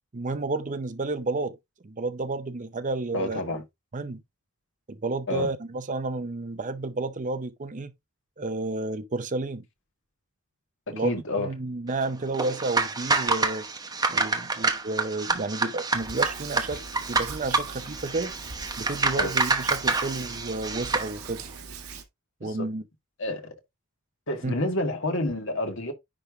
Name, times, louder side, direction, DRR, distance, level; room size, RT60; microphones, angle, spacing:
voice 1, 0.1-1.6 1.8-3.6 3.9-4.2 4.9-7.9 8.4-9.6 10.9-13.7 14.1-16.8 17.1-18.3 18.8-21.4 22.4-22.8 24.4-24.5, right 3 dB, 35° right, 0.6 m, -31 dB
voice 2, 3.1-3.6 5.3-5.5 10.9-11.5 19.2-19.3 22.4-22.7 23.2-23.5 24.3-25.9, left 1 dB, 55° left, 1.7 m, -29 dB
sound 1, 12.3-21.1, right 3 dB, 15° right, 1.0 m, -27 dB
Hands, 15.9-22.0, right 5 dB, 75° right, 2.0 m, -41 dB
10.0 x 3.4 x 3.5 m
head